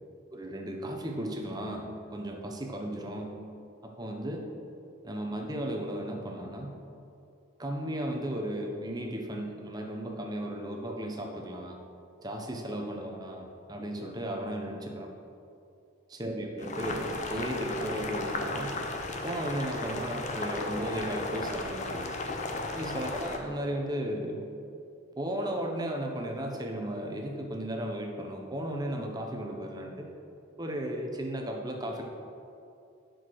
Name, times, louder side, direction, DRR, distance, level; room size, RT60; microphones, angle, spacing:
voice 1, 0.3-3.4 3.8-4.5 5.0-6.8 7.6-11.8 12.2-15.1 16.1-18.8 19.2-22.1 22.7-24.4 25.2-30.1 30.6-32.0, right 1 dB, 20° right, 2 dB, 0.8 m, -35 dB
Boiling, 16.6-23.4, left 2 dB, 35° left, 0.6 m, -35 dB
8.6 x 6.3 x 4.7 m, 2.6 s
head